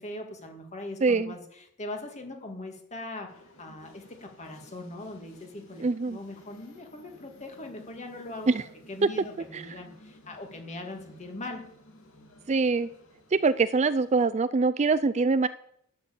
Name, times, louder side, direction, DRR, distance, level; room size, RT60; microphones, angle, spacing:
voice 1, 0.0-8.5 8.9-11.7, left 2 dB, 30° left, 4 dB, 2.3 m, -41 dB
voice 2, 1.0-1.3 5.8-6.2 8.5-8.6 9.0-9.1 9.5-9.6 12.5-12.9 13.3-15.5, right 4 dB, 30° right, 14 dB, 0.4 m, -24 dB
sound 1, 3.3-14.2, left 1 dB, 60° left, 2.8 m, -55 dB
12.0 x 6.8 x 8.6 m, 0.70 s
head